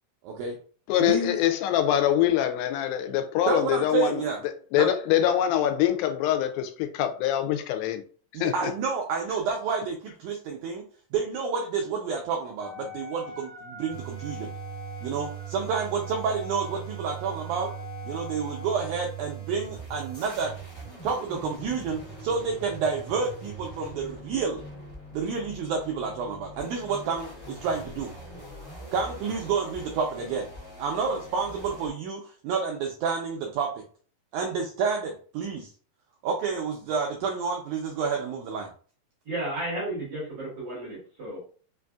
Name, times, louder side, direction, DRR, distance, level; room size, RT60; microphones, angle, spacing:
voice 1, 0.2-0.6 1.0-1.4 3.5-4.4 4.8-4.9 8.3-10.8 11.1-14.5 15.0-17.7 18.0-20.5 21.0-24.6 25.1-28.1 28.9-30.5 30.8-33.7 34.3-35.7 36.2-38.7, right 5 dB, 90° right, 1.7 m, -29 dB
voice 2, 0.9-8.0 8.4-8.7, left 11 dB, 90° left, 2.4 m, -24 dB
Wind instrument woodwind instrument, 12.6-19.0, left 5 dB, 65° right, 1.1 m, -44 dB
sound 1, 13.9-31.9, right 5 dB, 25° left, 1.3 m, -41 dB
voice 3, 39.2-41.4, right 1 dB, 45° right, 1.6 m, -33 dB
5.3 x 2.5 x 2.3 m
omnidirectional pair, 4.1 m